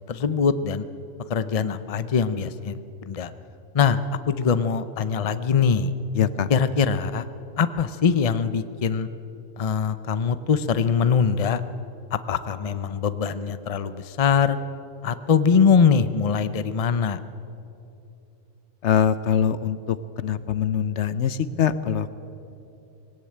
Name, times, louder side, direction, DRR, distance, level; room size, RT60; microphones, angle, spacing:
voice 1, 0.1-0.9 1.3-3.3 3.7-5.9 6.5-7.2 7.6-9.1 9.6-11.6 12.1-14.6 15.0-17.2, left 6 dB, 35° left, 12 dB, 0.7 m, -22 dB
voice 2, 6.1-6.5 18.8-22.2, left 8 dB, 70° left, 14 dB, 1.0 m, -23 dB
20.0 x 17.0 x 8.8 m, 2.7 s
omnidirectional pair, 1.2 m